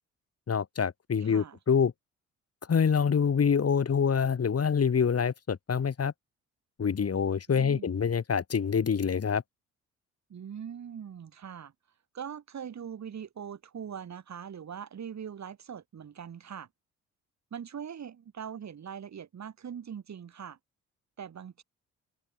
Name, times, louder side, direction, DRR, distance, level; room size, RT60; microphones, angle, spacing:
voice 1, 0.5-1.9 2.7-6.1 6.8-9.4, left 6 dB, 40° left, 4.5 m, -26 dB
voice 2, 1.2-1.6 7.5-8.0 10.3-11.7 12.1-16.7 17.5-20.6 21.2-21.6, right 8 dB, 50° right, 6.0 m, -42 dB
open air
hypercardioid pair, 45°, 35 cm